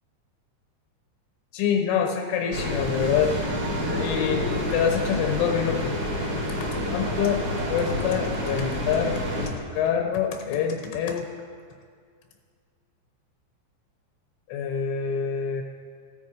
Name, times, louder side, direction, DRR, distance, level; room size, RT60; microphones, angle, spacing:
voice 1, 1.5-3.3 4.0-4.4 4.7-5.9 6.9-7.4 7.7-11.3 14.5-15.6, left 7 dB, 85° left, 3 dB, 3.6 m, -26 dB
sound 1, 2.5-9.5, left 1 dB, 35° right, 1.6 m, -28 dB
18.5 x 15.0 x 4.9 m, 2.1 s
omnidirectional pair, 5.5 m